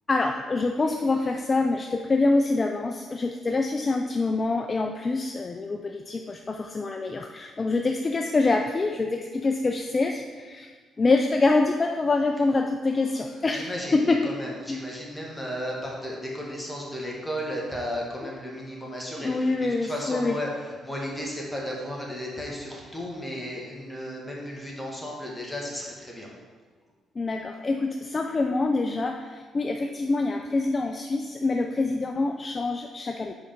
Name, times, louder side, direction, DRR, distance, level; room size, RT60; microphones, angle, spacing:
voice 1, 0.1-10.7 11.0-14.2 14.7-14.8 19.2-20.4 27.2-33.3, left 3 dB, 30° left, 4 dB, 0.4 m, -25 dB
voice 2, 13.1-26.3, equal, 5° left, -3 dB, 1.7 m, -34 dB
5.2 x 4.7 x 5.2 m, 1.5 s
cardioid pair, 90°, 0 cm